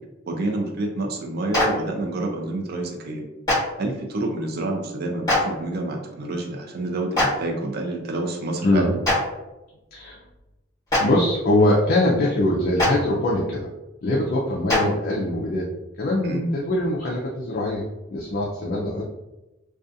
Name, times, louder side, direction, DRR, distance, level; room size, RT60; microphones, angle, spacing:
voice 1, 0.3-3.2 3.8-9.0 16.2-16.5, right 2 dB, 50° right, 2 dB, 0.4 m, -28 dB
Clapping, 1.5-1.6 3.4-3.6 5.3-5.4 7.1-7.3 9.0-9.1 10.9-11.0 12.8-12.9 14.7-14.8, left 1 dB, 20° left, 1.1 m, -20 dB
voice 2, 11.0-13.7 14.0-15.7 16.0-19.0, left 1 dB, 45° left, -4 dB, 0.4 m, -22 dB
2.4 x 2.3 x 2.6 m, 1.0 s
head